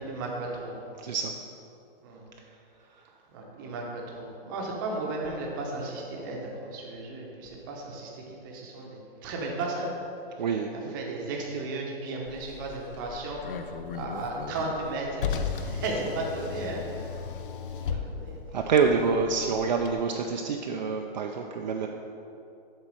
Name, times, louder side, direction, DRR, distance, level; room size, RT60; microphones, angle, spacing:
voice 1, 0.0-0.8 2.0-2.3 3.3-9.9 10.7-17.2 17.9-18.6, right 2 dB, 20° right, -1 dB, 0.8 m, -35 dB
voice 2, 1.0-1.3 10.4-11.0 17.9-18.0 18.5-21.9, right 5 dB, 50° right, 2 dB, 0.5 m, -27 dB
Car, 12.3-19.9, left 6 dB, 60° left, 0.6 m, -36 dB
7.4 x 4.1 x 6.2 m, 2.8 s
hypercardioid pair, 170°, 29 cm